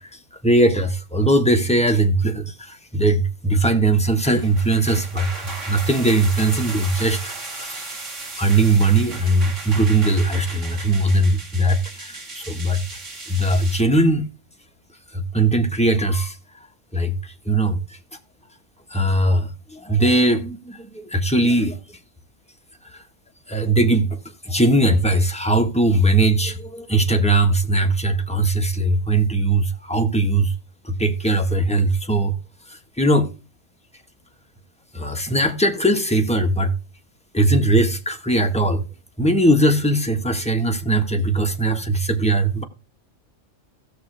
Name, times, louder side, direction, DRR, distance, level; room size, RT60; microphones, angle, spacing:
voice 1, 0.4-7.2 7.5-7.9 8.4-12.8 13.3-14.3 15.1-16.4 16.9-17.8 18.9-21.8 23.5-24.2 24.4-30.5 30.8-32.3 33.0-33.3 34.9-36.7 37.3-38.8 39.2-42.6, right 2 dB, 5° left, 1.2 m, -19 dB
sound 1, 4.1-13.8, right 3 dB, 75° right, 2.6 m, -35 dB
16.5 x 6.7 x 3.3 m
omnidirectional pair, 1.3 m